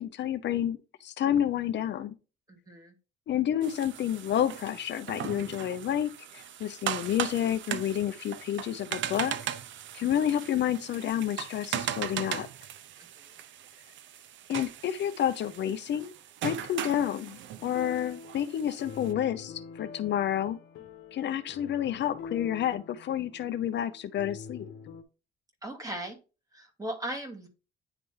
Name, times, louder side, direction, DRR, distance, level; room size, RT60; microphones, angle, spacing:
voice 1, 0.0-2.1 3.3-9.4 9.9-12.5 14.5-16.1 16.4-20.6 21.1-24.7, left 10 dB, 65° left, 0.6 m, -30 dB
voice 2, 2.5-3.0 13.0-13.3 25.6-26.2 26.5-27.5, right 1 dB, 20° right, 2.1 m, -38 dB
sound 1, 3.6-19.1, right 10 dB, 70° right, 0.6 m, -38 dB
sound 2, 17.6-25.0, left 5 dB, 80° left, 1.1 m, -45 dB
9.7 x 3.4 x 3.2 m
cardioid pair, 90°, 20 cm